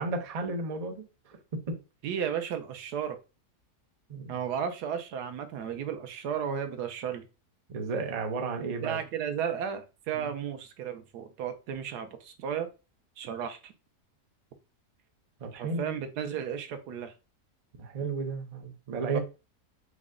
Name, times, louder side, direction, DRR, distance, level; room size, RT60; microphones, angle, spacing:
voice 1, 0.0-1.4 1.7-1.8 4.1-4.3 7.7-9.0 10.1-10.3 15.4-15.9 17.7-19.2, right 4 dB, 40° right, 0.5 m, -33 dB
voice 2, 2.0-3.2 4.3-7.3 8.8-12.7 13.2-13.7 15.5-17.1 19.1-19.2, right 8 dB, 85° right, 1.2 m, -34 dB
5.0 x 2.1 x 3.6 m
omnidirectional pair, 1.7 m